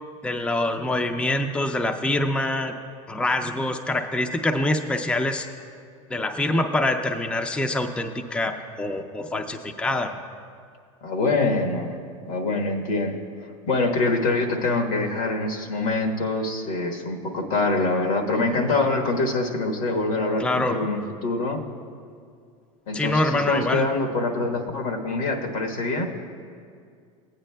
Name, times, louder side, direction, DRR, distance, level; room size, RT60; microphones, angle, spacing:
voice 1, 0.2-2.7 3.1-5.5 6.1-10.1 20.4-20.9 22.9-23.9, left 1 dB, 5° left, 6 dB, 0.4 m, -25 dB
voice 2, 11.0-12.0 12.3-13.2 13.4-21.6 22.9-26.1, left 3 dB, 80° left, 2 dB, 1.3 m, -25 dB
16.0 x 9.0 x 2.2 m, 2.2 s
supercardioid pair, 105°, 17 cm